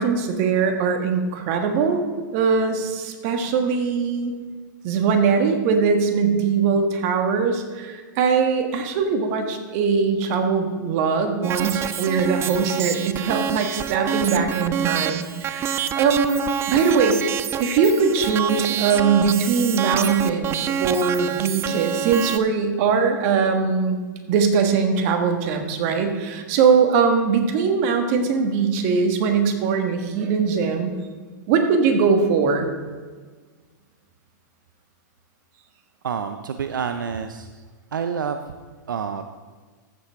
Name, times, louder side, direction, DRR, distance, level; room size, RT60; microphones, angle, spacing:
voice 1, 0.0-2.0 2.3-4.3 4.8-17.2 17.6-24.0 24.3-30.9 31.5-32.7, right 5 dB, 50° right, 5 dB, 1.5 m, -21 dB
sound 1, 11.4-22.4, right 8 dB, 25° right, 0.4 m, -27 dB
voice 2, 36.0-37.5 37.9-38.4 38.9-39.2, right 6 dB, 85° right, 8 dB, 0.5 m, -28 dB
14.5 x 6.8 x 3.6 m, 1.4 s
hypercardioid pair, 110°, 10 cm